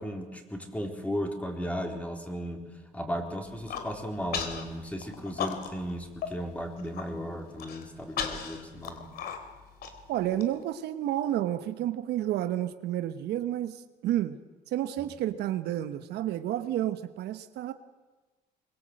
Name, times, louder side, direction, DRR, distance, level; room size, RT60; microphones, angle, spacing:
voice 1, 0.0-2.6 2.9-9.1 15.0-15.1, equal, 10° left, 3 dB, 3.9 m, -35 dB
Human voice, 3.4-3.9 4.3-4.6 5.0-5.9 6.2-6.3 6.7-7.0 7.6-10.4, left 7 dB, 70° left, 3.3 m, -35 dB
voice 2, 10.1-14.4 14.7-17.7, right 12 dB, 75° right, 10 dB, 1.2 m, -30 dB
24.5 x 22.5 x 7.8 m, 1.3 s
cardioid pair, 110°, 17 cm